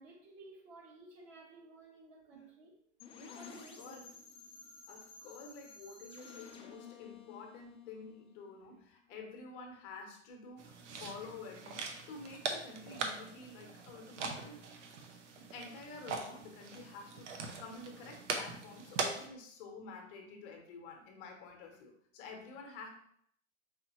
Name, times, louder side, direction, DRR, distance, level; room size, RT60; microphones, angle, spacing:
voice 1, 0.0-2.8 3.3-4.1 14.7-14.9, right 3 dB, 35° right, -2 dB, 1.6 m, -55 dB
sound 1, 3.0-8.8, left 5 dB, 15° left, 0.6 m, -53 dB
voice 2, 3.1-4.0 4.9-14.6 15.4-22.9, left 4 dB, 40° left, 2 dB, 1.0 m, -50 dB
sound 2, 10.6-19.3, right 4 dB, 60° right, 0.9 m, -42 dB
5.0 x 3.2 x 3.0 m, 0.67 s
figure-of-eight pair, 100°, 40 cm